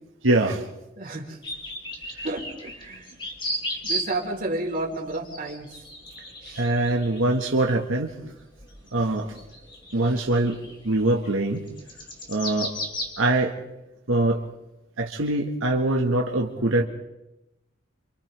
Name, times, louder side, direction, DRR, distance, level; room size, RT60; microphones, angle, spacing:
voice 1, 0.2-0.6 6.6-8.1 8.9-9.4 9.9-10.6 10.8-11.7 12.3-12.7 13.2-13.5 14.1-14.4 15.0-16.8, right 2 dB, 85° right, 0 dB, 1.7 m, -23 dB
voice 2, 1.0-1.4 2.2-3.1 3.8-5.7 6.4-6.7, right 2 dB, 45° right, 0 dB, 4.1 m, -31 dB
sound 1, 1.4-4.3 4.7-13.1, equal, 25° left, 3.4 m, -35 dB
29.5 x 26.5 x 3.5 m, 0.92 s
head